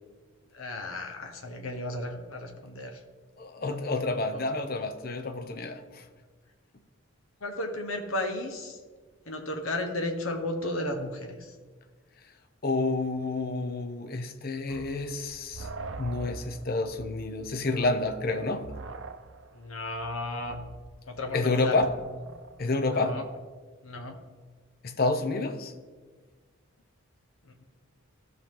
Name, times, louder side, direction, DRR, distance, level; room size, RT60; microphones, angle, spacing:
voice 1, 0.5-3.0 4.3-4.4 7.4-8.8 9.3-11.5 19.5-20.6 21.1-21.8 22.9-23.2 23.8-24.2, left 1 dB, 80° left, 1.1 m, -34 dB
voice 2, 3.4-6.0 12.6-15.7 16.0-18.7 21.3-21.9 22.6-23.2 24.8-25.7, left 3 dB, 45° left, 0.6 m, -29 dB
sound 1, 14.7-22.8, right 3 dB, 60° right, 0.6 m, -44 dB
14.5 x 5.6 x 3.7 m
head